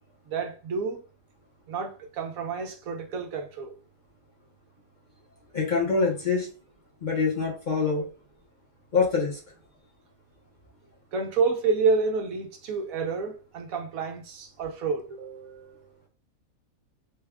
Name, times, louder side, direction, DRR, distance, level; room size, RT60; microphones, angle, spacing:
voice 1, 0.3-1.0 1.7-3.7 11.1-16.0, right 4 dB, 80° right, 1.2 m, -29 dB
voice 2, 5.5-6.5 7.0-8.1 8.9-9.4, left 4 dB, 40° left, 0.8 m, -25 dB
3.5 x 2.2 x 3.5 m
omnidirectional pair, 1.5 m